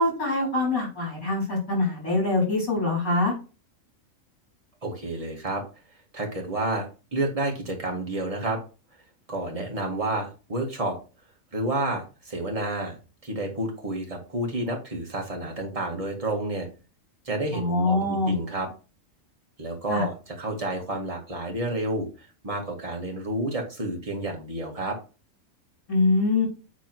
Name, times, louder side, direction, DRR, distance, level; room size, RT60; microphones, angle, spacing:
voice 1, 0.0-3.3 17.5-18.3 19.9-20.0 25.9-26.5, left 2 dB, 85° left, -3 dB, 4.8 m, -24 dB
voice 2, 4.8-5.6 6.1-8.6 9.3-11.0 11.5-12.9 13.2-16.7 17.2-18.7 19.6-25.0, right 2 dB, 25° right, 0 dB, 2.0 m, -30 dB
8.2 x 3.8 x 4.5 m, 0.33 s
omnidirectional pair, 1.4 m